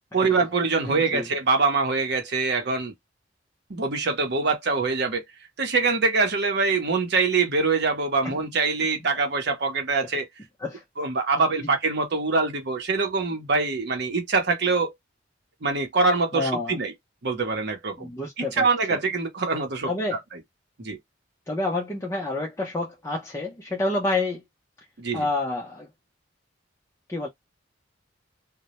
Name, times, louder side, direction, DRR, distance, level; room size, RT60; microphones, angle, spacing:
voice 1, 0.1-2.9 3.7-5.2 5.6-10.3 11.0-14.9 15.6-16.9 17.2-18.1 18.4-20.2 20.8-21.0 25.0-25.3, right 4 dB, 60° right, 0.7 m, -24 dB
voice 2, 0.8-1.3 8.2-8.4 10.6-10.8 16.3-16.8 18.0-19.0 19.9-20.2 21.5-24.4 25.1-25.9 27.1-27.3, left 2 dB, 15° left, 0.5 m, -29 dB
2.2 x 2.0 x 2.8 m
head